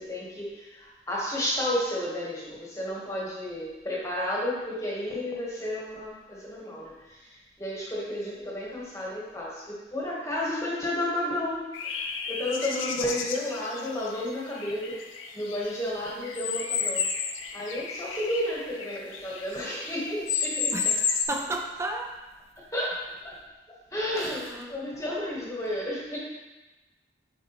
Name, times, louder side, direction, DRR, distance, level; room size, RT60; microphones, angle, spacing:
voice 1, 0.0-15.0 15.3-17.1 17.5-20.9 22.6-23.4 23.7-26.2, left 1 dB, 15° left, -5 dB, 1.0 m, -32 dB
sound 1, 11.7-19.9 20.3-21.2, left 6 dB, 85° left, 0.6 m, -32 dB
voice 2, 20.7-22.2 24.2-24.8, right 2 dB, 15° right, 2 dB, 0.5 m, -34 dB
7.8 x 4.3 x 2.9 m, 1.1 s
head